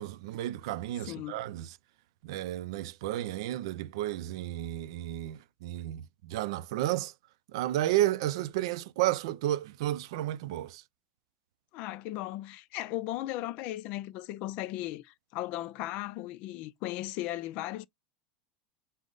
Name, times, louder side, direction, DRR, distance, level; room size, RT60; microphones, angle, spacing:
voice 1, 0.0-1.7 2.2-7.1 7.5-10.8, right 14 dB, 70° right, 0.4 m, -32 dB
voice 2, 1.0-1.4 11.7-17.9, left 15 dB, 45° left, 0.3 m, -36 dB
5.1 x 2.1 x 3.8 m
supercardioid pair, 165°, 3 cm